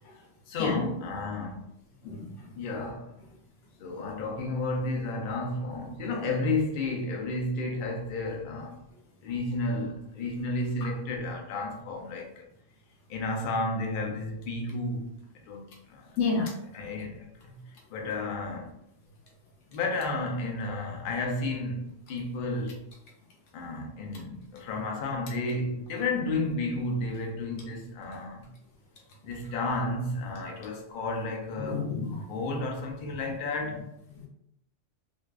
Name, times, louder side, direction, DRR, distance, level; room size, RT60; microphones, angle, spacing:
voice 1, 0.5-1.7 2.5-3.1 3.8-8.8 9.2-12.5 13.1-15.1 15.5-16.2 16.7-17.6 17.9-18.7 19.7-22.8 23.5-28.5 29.2-31.9 32.1-33.8, left 2 dB, 60° left, 0.5 m, -32 dB
voice 2, 2.0-2.5 16.2-16.5 31.6-32.2 34.1-34.3, left 4 dB, 90° left, 1.0 m, -30 dB
2.5 x 2.2 x 2.3 m
omnidirectional pair, 1.3 m